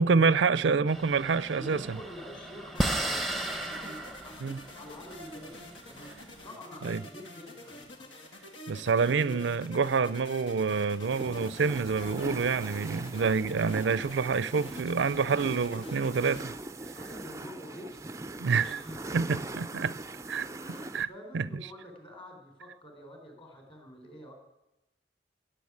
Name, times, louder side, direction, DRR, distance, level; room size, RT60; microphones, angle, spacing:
voice 1, 0.0-2.0 4.4-4.6 6.8-7.0 8.7-16.5 18.4-18.8 19.1-19.9 20.3-20.4 20.9-21.1 21.3-21.5, right 5 dB, 75° right, 18 dB, 0.5 m, -27 dB
sound 1, 0.9-6.4, right 1 dB, ahead, 0.8 m, -35 dB
voice 2, 1.5-4.4 4.8-8.1 9.1-9.4 16.9-18.1 18.4-19.4 20.3-24.3, equal, 30° left, 3 dB, 3.9 m, -47 dB
sound 2, 2.7-16.4, left 1 dB, 85° left, 2.4 m, -48 dB
sound 3, 11.0-21.0, right 2 dB, 15° right, 0.4 m, -41 dB
16.5 x 6.9 x 9.7 m, 0.94 s
head